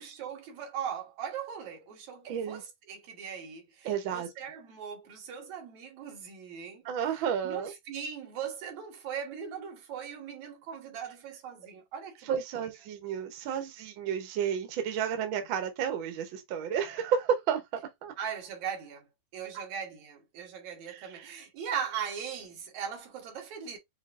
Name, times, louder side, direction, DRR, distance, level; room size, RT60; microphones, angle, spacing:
voice 1, 0.0-12.7 18.2-19.1 19.3-23.8, right 7 dB, 70° right, 2.4 m, -39 dB
voice 2, 2.3-2.6 3.8-4.3 6.8-7.7 12.3-18.1 20.9-21.3, right 8 dB, 85° right, 1.0 m, -32 dB
6.4 x 2.7 x 2.4 m
omnidirectional pair, 3.6 m